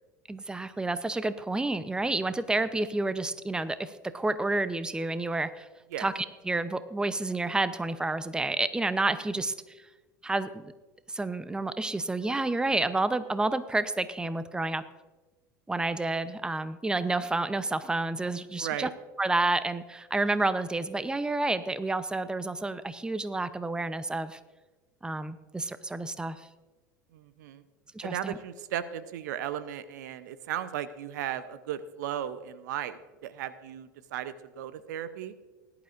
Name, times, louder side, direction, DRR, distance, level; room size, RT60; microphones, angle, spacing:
voice 1, 0.3-5.7 6.0-9.5 10.2-10.6 11.1-14.8 15.7-18.9 19.2-24.4 25.0-26.5 27.9-28.4, right 2 dB, 10° right, 13 dB, 0.7 m, -30 dB
voice 2, 18.6-18.9 27.1-27.6 28.0-35.3, right 10 dB, 65° right, 14 dB, 0.7 m, -36 dB
19.5 x 11.5 x 2.6 m, 1.2 s
figure-of-eight pair, 75°, 10 cm